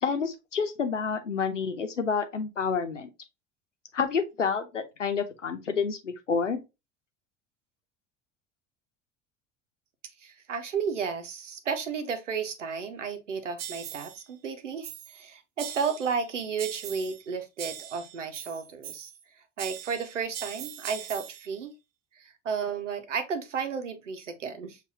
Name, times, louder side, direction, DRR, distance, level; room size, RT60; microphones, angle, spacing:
voice 1, 0.0-3.1 3.9-6.6, left 5 dB, 90° left, 0.9 m, -29 dB
voice 2, 10.2-19.1 19.6-21.7 22.2-24.8, right 6 dB, 85° right, 0.9 m, -33 dB
sound 1, 13.6-14.2 14.8-15.2 15.6-16.2 16.6-17.3 17.6-19.2 19.6-21.5, right 10 dB, 45° right, 0.8 m, -41 dB
6.9 x 2.7 x 2.7 m
figure-of-eight pair, 65°, 36 cm